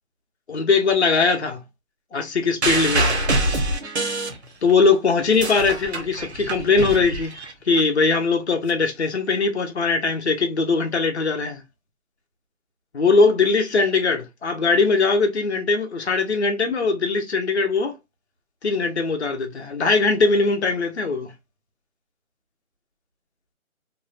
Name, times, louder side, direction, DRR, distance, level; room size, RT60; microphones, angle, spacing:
voice 1, 0.5-1.6 2.1-3.1 3.3-3.6 4.6-7.4 7.7-11.6 12.9-17.9 18.6-21.3, left 4 dB, 50° left, 0.6 m, -20 dB
sound 1, 2.6-4.8 5.2-7.8 8.7-8.8, right 2 dB, 50° right, 0.5 m, -25 dB
2.6 x 2.0 x 2.3 m
hypercardioid pair, 175°, 42 cm